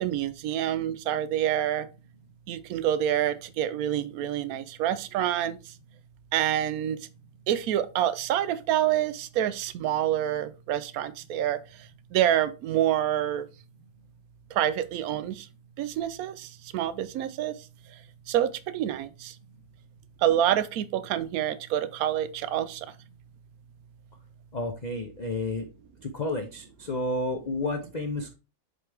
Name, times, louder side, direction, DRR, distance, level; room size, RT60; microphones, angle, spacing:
voice 1, 0.0-1.8 2.5-5.6 6.3-7.0 7.5-11.6 12.1-13.4 14.6-15.3 15.8-16.3 16.7-17.5 18.3-19.1 20.2-22.8, right 11 dB, 70° right, 0.9 m, -27 dB
voice 2, 24.5-25.7 26.0-28.3, left 2 dB, 60° left, 0.4 m, -31 dB
7.8 x 4.1 x 3.4 m
omnidirectional pair, 1.8 m